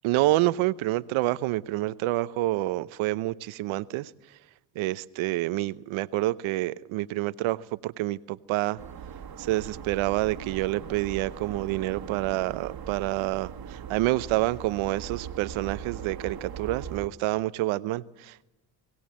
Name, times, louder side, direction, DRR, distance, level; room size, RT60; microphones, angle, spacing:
voice 1, 0.0-4.1 4.8-8.8 9.4-18.5, right 17 dB, 70° right, 0.9 m, -28 dB
sound 1, 8.8-17.1, right 8 dB, 45° right, 1.7 m, -40 dB
20.5 x 17.5 x 8.7 m
supercardioid pair, 70°, 49 cm